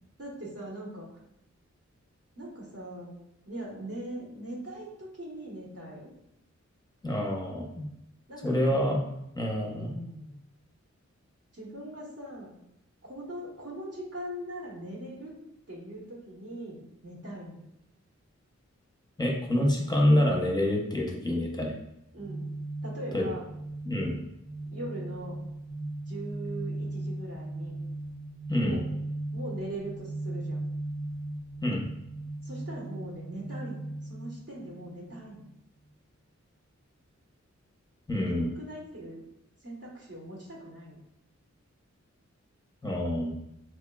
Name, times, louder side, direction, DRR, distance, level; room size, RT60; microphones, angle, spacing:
voice 1, 0.2-1.1 2.4-3.1 3.4-6.1 8.3-8.9 9.6-10.3 11.5-12.5 13.1-15.3 15.7-17.7 22.1-22.5 22.8-23.5 24.7-25.4 26.1-27.7 28.6-28.9 29.3-30.7 32.4-35.4 38.2-39.2 39.6-41.0, right 1 dB, 55° right, -4 dB, 1.2 m, -41 dB
voice 2, 7.0-7.9 8.4-9.0 9.4-9.9 19.2-21.7 23.1-23.3 23.9-24.2 28.5-28.8 31.6-31.8 38.1-38.5 42.8-43.3, left 1 dB, 15° left, 0 dB, 0.8 m, -27 dB
sound 1, 22.2-35.2, right 2 dB, 25° right, 0.7 m, -37 dB
4.4 x 2.8 x 2.3 m, 0.81 s
wide cardioid pair, 60°, 29 cm